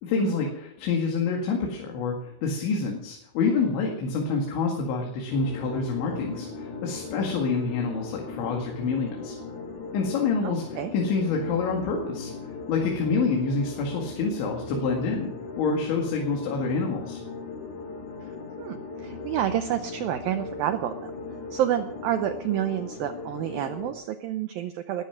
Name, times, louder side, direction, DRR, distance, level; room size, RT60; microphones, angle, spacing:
voice 1, 0.0-9.4 9.9-12.3 12.7-15.3 15.6-17.2, left 4 dB, 85° left, 0 dB, 4.5 m, -27 dB
sound 1, 5.3-23.9, left 4 dB, 55° left, 2.5 m, -38 dB
voice 2, 10.4-10.9 18.6-21.1 21.5-25.1, right 11 dB, 85° right, 8 dB, 2.0 m, -29 dB
20.0 x 11.5 x 5.9 m, 0.72 s
omnidirectional pair, 5.2 m